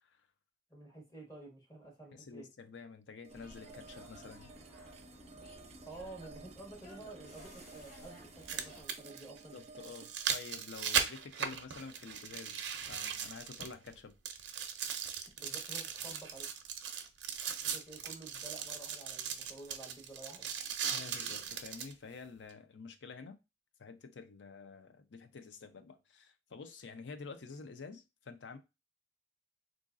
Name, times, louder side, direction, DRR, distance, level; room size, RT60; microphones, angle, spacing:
voice 1, 0.7-2.5 5.8-9.6 15.4-16.5 17.6-20.5, right 2 dB, 20° left, 1.4 m, -51 dB
voice 2, 2.1-4.5 9.5-14.2 20.9-23.4 23.8-28.6, left 4 dB, 90° left, 0.5 m, -49 dB
sound 1, 3.2-12.3, right 4 dB, 35° right, 0.3 m, -55 dB
sound 2, 3.3-8.8, left 1 dB, 50° left, 1.7 m, -55 dB
sound 3, 5.0-5.1 7.0-7.1 8.2-13.9 14.2-21.9 22.5-22.6, right 7 dB, 90° right, 0.5 m, -38 dB
3.9 x 2.5 x 2.5 m
head